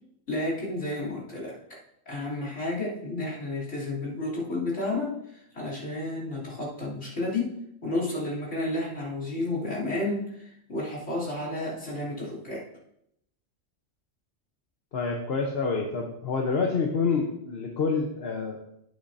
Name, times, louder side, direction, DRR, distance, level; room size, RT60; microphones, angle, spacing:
voice 1, 0.3-1.6 2.1-12.7, left 2 dB, 85° left, -5 dB, 3.6 m, -31 dB
voice 2, 14.9-18.6, left 4 dB, 60° left, 1 dB, 1.2 m, -27 dB
11.5 x 8.5 x 2.7 m, 0.78 s
omnidirectional pair, 1.2 m